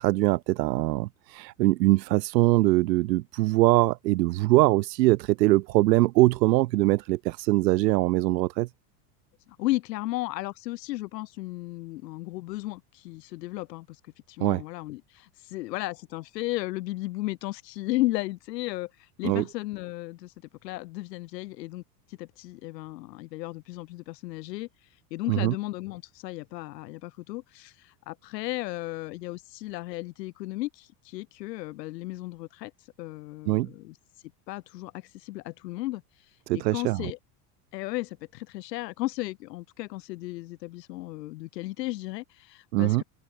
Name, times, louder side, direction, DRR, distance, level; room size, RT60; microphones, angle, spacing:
voice 1, 0.0-8.7 14.4-14.6 19.2-19.4 25.3-25.5 33.5-33.7 36.5-37.1 42.7-43.0, right 19 dB, 80° right, 4.5 m, -22 dB
voice 2, 9.6-14.0 14.3-20.3 20.6-21.8 22.1-34.0 34.5-37.2 37.7-43.0, left 19 dB, 80° left, 6.9 m, -35 dB
open air
supercardioid pair, 175°, 48 cm